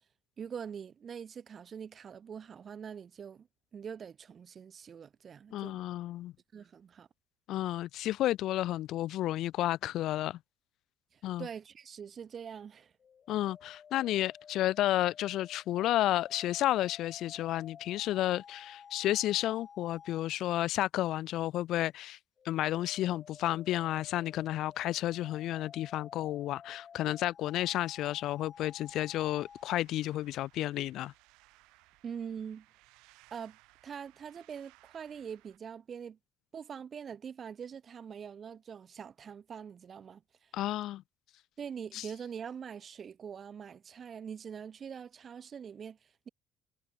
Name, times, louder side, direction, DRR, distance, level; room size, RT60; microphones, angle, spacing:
voice 1, 0.4-3.5 3.7-5.8 6.5-7.1 11.1-12.9 32.0-32.7 33.3-33.6 33.8-36.2 36.5-40.5 41.6-46.3, right 7 dB, 45° right, 2.6 m, -44 dB
voice 2, 5.5-6.3 7.5-10.4 11.2-11.5 13.3-22.2 22.4-31.1 40.5-41.0 41.9-42.0, left 14 dB, 70° left, 0.9 m, -31 dB
sound 1, 13.0-20.4 22.4-29.7, left 7 dB, 45° left, 3.7 m, -53 dB
sound 2, 28.5-35.6, right 23 dB, 80° right, 3.8 m, -64 dB
supercardioid pair, 80°, 0 cm